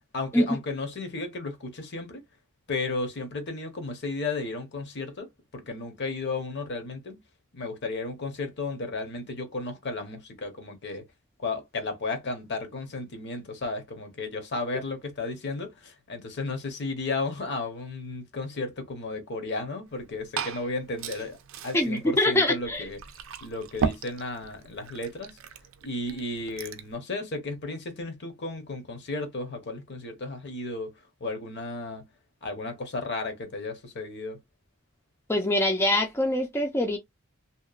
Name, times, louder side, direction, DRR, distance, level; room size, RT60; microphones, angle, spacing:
voice 1, 0.1-2.2 2.7-5.3 5.5-7.2 7.5-11.0 11.4-21.4 21.6-23.0 23.4-25.4 25.8-30.9 31.2-32.1 32.4-34.4, left 3 dB, 55° left, 0.8 m, -34 dB
Glass / Fill (with liquid), 19.9-26.9, right 5 dB, 65° right, 0.4 m, -37 dB
voice 2, 21.7-22.8 35.3-37.0, left 1 dB, 10° left, 0.4 m, -24 dB
2.8 x 2.1 x 2.4 m
head